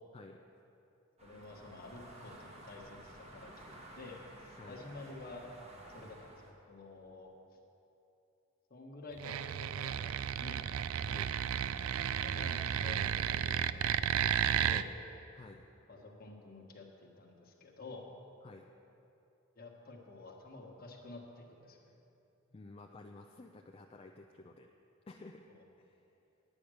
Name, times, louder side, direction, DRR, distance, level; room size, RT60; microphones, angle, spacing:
voice 1, 1.2-5.4 5.9-6.4 6.7-7.3 8.7-10.6 12.2-14.2 14.6-15.0 15.9-18.1 19.5-21.9 25.5-25.6, left 2 dB, 45° left, 1 dB, 1.3 m, -50 dB
sound 1, 1.2-6.5, right 1 dB, 30° right, 1.3 m, -53 dB
sound 2, 9.2-14.8, right 9 dB, 85° right, 0.3 m, -33 dB
voice 2, 22.5-24.7 25.1-25.5 25.8-26.0, left 2 dB, 30° left, 2 dB, 0.4 m, -52 dB
10.0 x 8.7 x 6.3 m, 2.8 s
head